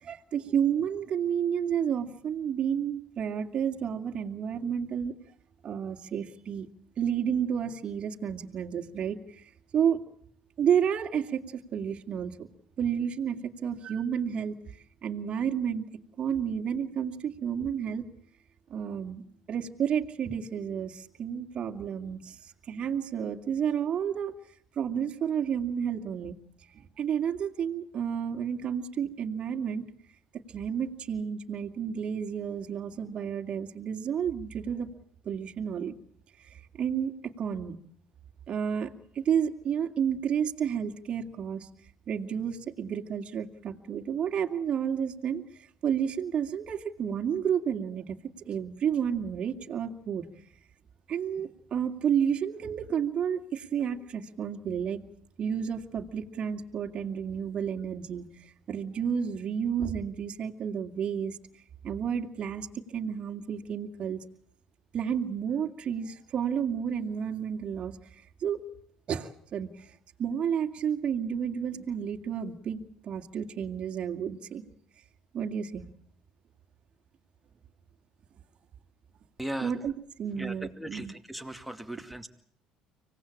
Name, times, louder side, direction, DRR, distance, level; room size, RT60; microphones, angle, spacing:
voice 1, 0.0-5.1 5.6-6.7 7.0-9.4 9.7-10.0 10.6-12.5 12.8-14.5 15.0-15.9 16.2-18.1 18.7-22.4 22.7-24.3 24.8-26.3 26.7-29.8 30.5-34.9 35.2-36.0 36.5-37.8 38.5-41.7 42.1-45.4 45.8-48.2 48.4-50.2 51.1-55.0 55.4-61.4 61.8-64.2 64.9-68.0 68.4-68.6 69.1-69.9 70.2-74.6 75.3-75.8 79.6-79.9 80.2-81.1, right 8 dB, 45° right, 4 dB, 2.4 m, -31 dB
voice 2, 79.4-79.7 80.4-82.3, right 1 dB, ahead, 6 dB, 2.4 m, -38 dB
25.0 x 18.0 x 8.8 m, 0.64 s
supercardioid pair, 95°, 3 cm